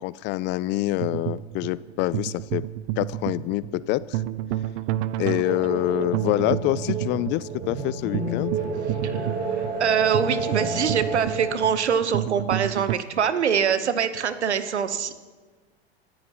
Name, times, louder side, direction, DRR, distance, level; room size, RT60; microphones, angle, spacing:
voice 1, 0.0-2.7 3.0-4.2 5.2-8.6, left 17 dB, 35° left, 20 dB, 0.4 m, -26 dB
sound 1, 1.0-12.9, right 14 dB, 55° right, 0.6 m, -30 dB
sound 2, 5.4-11.6, right 3 dB, 30° right, 5.8 m, -30 dB
voice 2, 9.0-15.1, right 7 dB, 90° right, 11 dB, 1.1 m, -24 dB
24.5 x 13.5 x 3.0 m, 1.4 s
hypercardioid pair, 100°, 33 cm